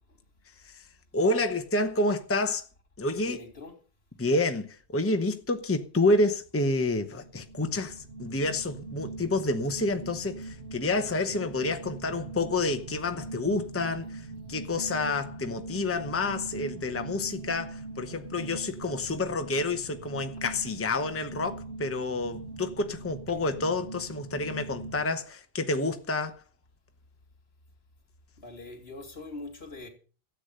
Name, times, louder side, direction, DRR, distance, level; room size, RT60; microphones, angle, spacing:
voice 1, 1.1-2.7 3.0-3.4 4.2-26.4, left 2 dB, 15° left, 0.9 m, -29 dB
voice 2, 3.2-3.8 28.4-29.9, left 2 dB, 75° left, 3.3 m, -43 dB
sound 1, 7.1-25.0, right 3 dB, 70° right, 1.3 m, -42 dB
13.5 x 8.2 x 6.6 m
omnidirectional pair, 1.0 m